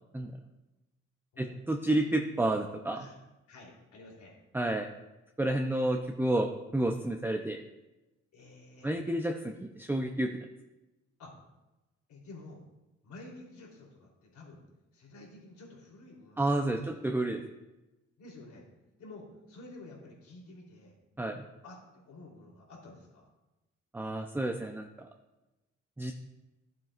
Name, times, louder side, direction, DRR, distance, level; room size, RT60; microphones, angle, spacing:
voice 1, 1.4-3.1 4.5-4.9 5.4-7.6 8.8-10.3 16.4-17.4 21.2-21.4 23.9-25.1 26.0-26.1, right 1 dB, 5° right, 3 dB, 0.6 m, -30 dB
voice 2, 3.5-4.4 8.3-8.9 11.2-11.3 12.1-12.6 13.0-14.6 14.9-17.3 18.2-18.6 19.0-20.9 21.6-23.3, left 2 dB, 75° left, -2 dB, 3.4 m, -51 dB
12.5 x 7.5 x 2.5 m, 1.0 s
cardioid pair, 90°, 30 cm